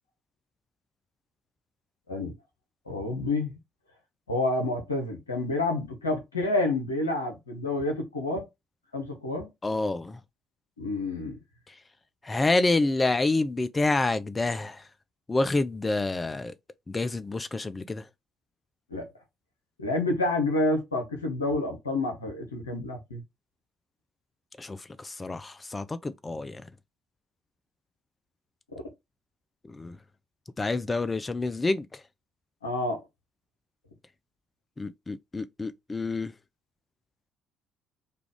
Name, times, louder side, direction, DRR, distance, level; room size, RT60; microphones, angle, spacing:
voice 1, 2.9-3.6 4.3-8.5 8.9-9.5 10.8-11.4 18.9-19.1 19.8-23.2 32.6-33.0, left 2 dB, 90° left, 0.8 m, -29 dB
voice 2, 9.6-10.2 11.7-11.8 12.2-14.8 15.3-16.5 16.9-18.1 24.6-26.6 29.7-30.0 30.6-32.0 34.8-36.3, left 2 dB, 25° left, 0.3 m, -28 dB
3.3 x 2.4 x 3.5 m
figure-of-eight pair, 50°, 0 cm